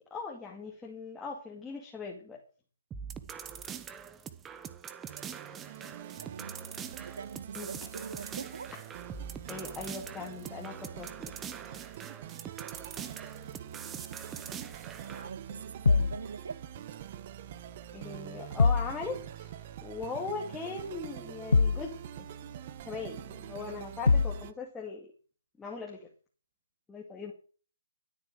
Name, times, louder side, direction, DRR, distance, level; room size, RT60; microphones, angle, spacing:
voice 1, 0.1-2.4 7.6-7.9 9.5-11.4 15.5-15.6 17.9-22.3 22.9-25.1 25.6-26.1 26.9-27.3, left 4 dB, 5° left, 2.1 m, -40 dB
sound 1, 2.9-15.3, right 7 dB, 10° right, 1.0 m, -44 dB
sound 2, 5.1-24.5, right 10 dB, 30° right, 1.1 m, -45 dB
voice 2, 6.2-6.5 7.0-8.7 15.1-16.6, right 5 dB, 65° right, 1.4 m, -42 dB
sound 3, 15.8-16.2 18.6-19.0 21.5-21.9 24.1-24.4, left 4 dB, 75° left, 0.6 m, -23 dB
13.5 x 8.4 x 7.8 m
hypercardioid pair, 160°, 0 cm